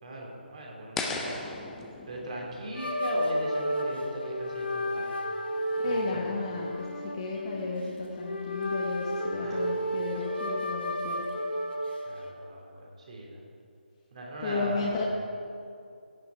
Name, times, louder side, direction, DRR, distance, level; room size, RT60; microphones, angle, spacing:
voice 1, 0.0-1.5 2.1-5.2 5.9-6.4 9.4-9.8 12.0-13.4 14.1-15.0, right 1 dB, 40° right, -2 dB, 2.8 m, -39 dB
sound 1, 1.0-4.0, left 3 dB, 5° left, 0.5 m, -38 dB
sound 2, 2.7-12.3, equal, 80° left, 2.1 m, -32 dB
voice 2, 5.8-6.7 7.1-11.2 14.4-15.0, left 4 dB, 30° left, -3 dB, 1.1 m, -33 dB
16.5 x 6.7 x 4.7 m, 2.5 s
figure-of-eight pair, 155°, 6 cm